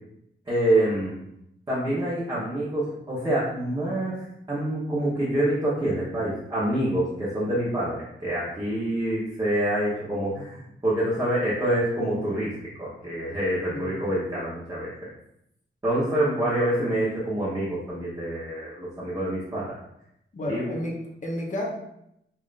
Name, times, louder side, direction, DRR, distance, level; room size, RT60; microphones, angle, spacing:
voice 1, 0.5-1.1 1.7-12.5 12.8-15.1 15.8-19.7 20.5-20.6, right 1 dB, 20° right, -11 dB, 1.0 m, -26 dB
voice 2, 13.7-14.0 20.3-21.6, left 1 dB, 40° left, -2 dB, 0.9 m, -31 dB
5.5 x 2.7 x 2.5 m, 0.79 s
wide cardioid pair, 170°, 20 cm